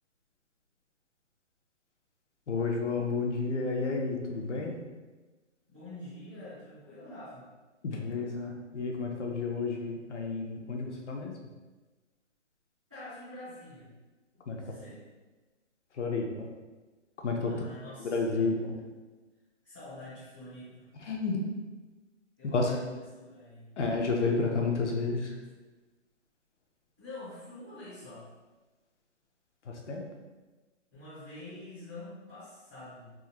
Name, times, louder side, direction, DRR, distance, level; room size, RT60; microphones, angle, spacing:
voice 1, 2.5-4.8 7.8-11.4 14.5-14.8 15.9-16.5 17.2-17.5 18.0-18.8 20.9-21.5 22.5-22.8 23.8-25.4 29.6-30.1, left 3 dB, 70° left, 1 dB, 0.7 m, -31 dB
voice 2, 5.7-7.5 12.9-13.9 14.4-15.0 17.5-18.4 19.6-20.9 22.4-23.7 27.0-28.3 30.9-33.1, left 2 dB, 5° right, -18 dB, 0.5 m, -46 dB
3.7 x 2.5 x 2.9 m, 1.2 s
hypercardioid pair, 165°, 37 cm